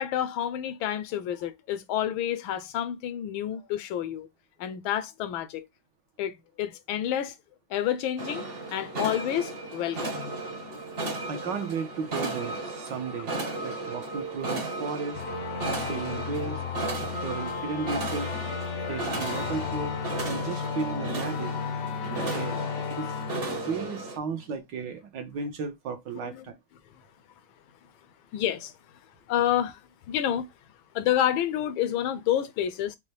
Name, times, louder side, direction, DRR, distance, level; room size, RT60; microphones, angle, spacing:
voice 1, 0.0-4.3 4.6-5.7 6.2-7.4 7.7-8.4 8.7-10.4 26.2-26.4 28.3-28.7 29.3-29.8 30.1-30.5 30.9-33.0, left 11 dB, 80° left, 1.5 m, -29 dB
sound 1, 8.2-24.2, right 2 dB, 40° right, 0.9 m, -35 dB
voice 2, 11.3-13.3 13.6-15.2 15.8-16.6 17.0-18.3 18.9-21.5 22.0-22.6 22.9-26.5, right 5 dB, 65° right, 1.4 m, -35 dB
sound 2, 15.1-24.5, left 7 dB, 65° left, 0.9 m, -34 dB
5.5 x 2.1 x 3.1 m
omnidirectional pair, 2.2 m